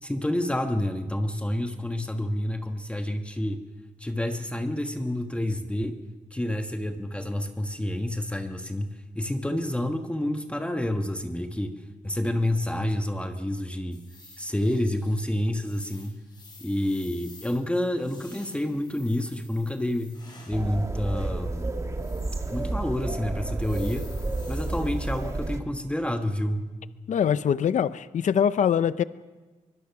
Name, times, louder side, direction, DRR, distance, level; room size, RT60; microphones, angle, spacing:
voice 1, 0.0-3.6 4.0-6.0 6.3-11.7 12.0-14.0 14.4-16.1 16.6-20.2 20.5-21.7 22.5-24.1 24.5-26.7, left 1 dB, 10° left, 5 dB, 1.4 m, -29 dB
sound 1, 13.9-20.7 21.4-22.7 23.0-23.1 23.5-25.5, left 3 dB, 35° left, 5.4 m, -52 dB
sound 2, 20.5-25.6, right 2 dB, 20° right, 1.6 m, -31 dB
voice 2, 27.1-29.0, left 8 dB, 65° left, 14 dB, 0.6 m, -23 dB
24.0 x 21.5 x 5.9 m, 1.3 s
wide cardioid pair, 110°, 14 cm